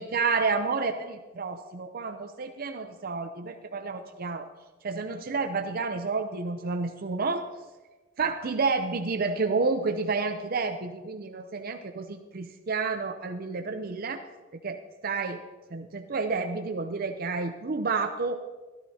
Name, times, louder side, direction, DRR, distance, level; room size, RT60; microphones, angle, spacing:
voice 1, 0.0-4.5 4.8-7.5 8.2-14.2 14.5-15.4 15.7-18.4, right 4 dB, 50° right, 6 dB, 0.6 m, -30 dB
13.5 x 13.0 x 2.8 m, 1.2 s
head